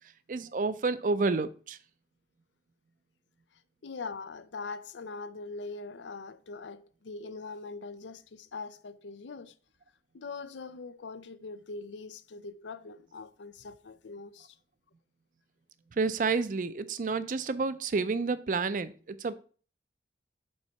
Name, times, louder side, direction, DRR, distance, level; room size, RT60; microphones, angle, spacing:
voice 1, 0.3-1.8 16.0-19.3, right 4 dB, 45° right, 0.4 m, -29 dB
voice 2, 3.8-9.5 10.1-14.6, left 4 dB, 85° left, 0.5 m, -42 dB
5.5 x 4.1 x 5.7 m
head